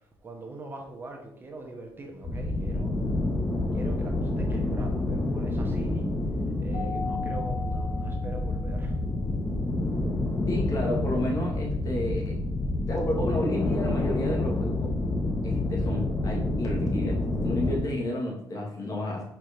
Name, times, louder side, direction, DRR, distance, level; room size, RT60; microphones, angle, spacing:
voice 1, 0.2-2.9 3.7-6.1 6.6-9.0, right 2 dB, 25° right, 2 dB, 1.0 m, -42 dB
sound 1, 2.2-17.8, left 2 dB, 25° left, 0.8 m, -28 dB
Keyboard (musical), 6.7-9.0, left 4 dB, 75° left, 1.7 m, -38 dB
voice 2, 10.5-12.4 12.9-14.9 15.4-19.2, left 1 dB, 45° left, -1 dB, 1.8 m, -31 dB
4.6 x 4.4 x 5.1 m, 0.75 s
cardioid pair, 130°, 8 cm